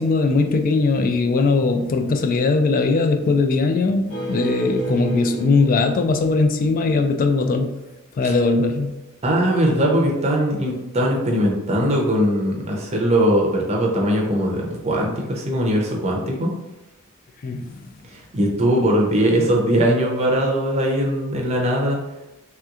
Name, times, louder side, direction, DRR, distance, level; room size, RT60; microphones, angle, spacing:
voice 1, 0.0-7.7 8.2-8.9 17.4-17.6, left 3 dB, 40° left, 6 dB, 0.3 m, -19 dB
sound 1, 4.1-7.1, right 2 dB, 60° left, 1.1 m, -31 dB
voice 2, 9.2-16.5 18.1-22.0, equal, 30° right, -1 dB, 0.6 m, -20 dB
3.2 x 2.9 x 2.4 m, 0.96 s
head